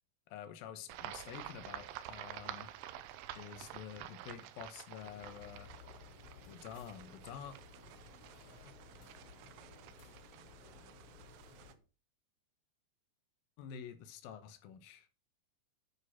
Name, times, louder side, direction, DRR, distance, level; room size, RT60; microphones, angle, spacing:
voice 1, 0.3-2.7 3.4-5.7 6.5-7.6 13.6-15.1, left 8 dB, 85° left, 2.0 m, -48 dB
sound 1, 0.9-11.7, right 12 dB, 90° right, 3.2 m, -50 dB
sound 2, 5.0-11.7, left 5 dB, 45° left, 3.6 m, -57 dB
10.0 x 6.3 x 5.7 m
omnidirectional pair, 5.5 m